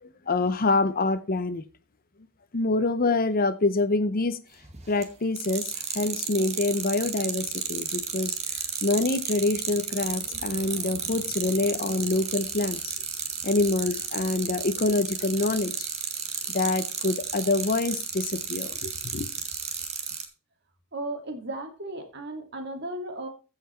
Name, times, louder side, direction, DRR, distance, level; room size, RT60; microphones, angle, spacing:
voice 1, 0.0-1.6 2.5-4.4 4.9-8.4 8.8-12.9 13.4-15.9 16.5-19.3, left 2 dB, 40° left, 0.7 m, -26 dB
sound 1, 4.6-5.0 5.4-20.2, right 7 dB, 30° right, 2.0 m, -32 dB
voice 2, 20.9-23.3, right 2 dB, 50° right, 2.6 m, -35 dB
15.5 x 5.8 x 4.4 m
head